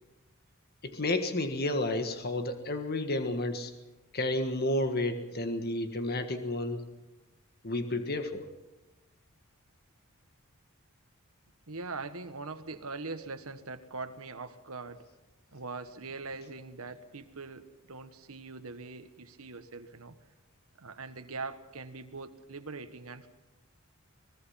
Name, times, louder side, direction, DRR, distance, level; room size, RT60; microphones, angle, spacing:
voice 1, 0.8-3.7 4.1-6.8 7.6-8.4, left 1 dB, 45° left, 7 dB, 1.6 m, -31 dB
voice 2, 11.7-15.1 15.5-20.2 20.8-23.3, right 3 dB, 70° right, 8 dB, 1.5 m, -42 dB
23.0 x 21.0 x 5.8 m, 1.1 s
head